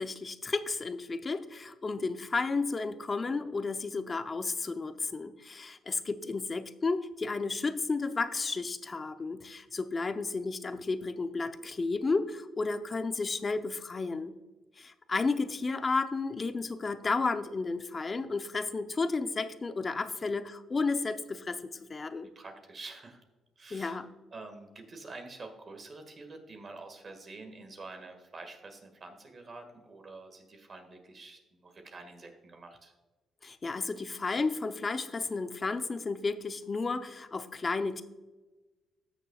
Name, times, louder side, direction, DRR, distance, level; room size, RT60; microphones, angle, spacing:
voice 1, 0.0-14.4 14.8-22.3 23.7-24.1 33.4-38.0, left 3 dB, 30° left, 10 dB, 0.6 m, -32 dB
voice 2, 22.4-23.2 23.6-24.0 24.3-32.9, right 3 dB, 40° right, 5 dB, 1.8 m, -47 dB
15.0 x 6.8 x 2.4 m, 1.2 s
cardioid pair, 90°, 0 cm